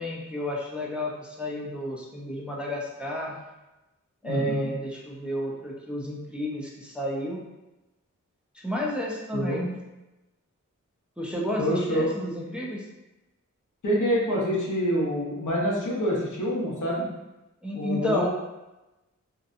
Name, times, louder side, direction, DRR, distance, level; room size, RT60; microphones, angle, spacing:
voice 1, 0.0-3.4 4.2-7.4 8.5-9.8 11.2-12.8 17.6-18.3, equal, 5° right, -3 dB, 0.5 m, -31 dB
voice 2, 4.2-4.7 9.3-9.6 11.6-12.1 13.8-17.1 17.7-18.3, equal, 75° left, -5 dB, 0.8 m, -26 dB
2.7 x 2.2 x 2.5 m, 1.0 s
wide cardioid pair, 55°, 31 cm